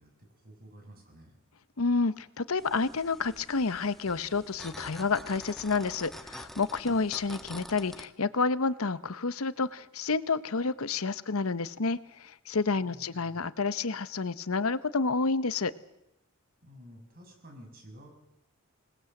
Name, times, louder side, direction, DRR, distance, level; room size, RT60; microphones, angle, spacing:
voice 1, 0.0-1.4 6.8-7.0 12.7-13.4 16.6-18.1, equal, 45° right, 3 dB, 6.1 m, -52 dB
voice 2, 1.8-15.7, left 4 dB, 85° left, 15 dB, 0.9 m, -29 dB
sound 1, 2.6-8.1, equal, ahead, 1.2 m, -47 dB
26.0 x 19.5 x 7.8 m, 0.85 s
head